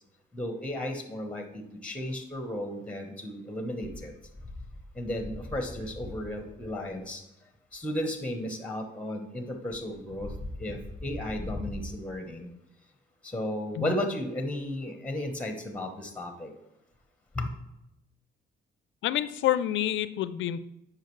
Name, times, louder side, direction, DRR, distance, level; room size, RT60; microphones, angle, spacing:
voice 1, 0.3-4.1 5.0-7.2 7.7-10.3 10.6-12.5 13.3-16.5 17.4-17.5, left 1 dB, 5° left, 5 dB, 1.0 m, -34 dB
voice 2, 19.0-20.7, left 12 dB, 75° left, 15 dB, 0.4 m, -28 dB
8.4 x 5.0 x 3.1 m, 0.87 s
cardioid pair, 90°, 20 cm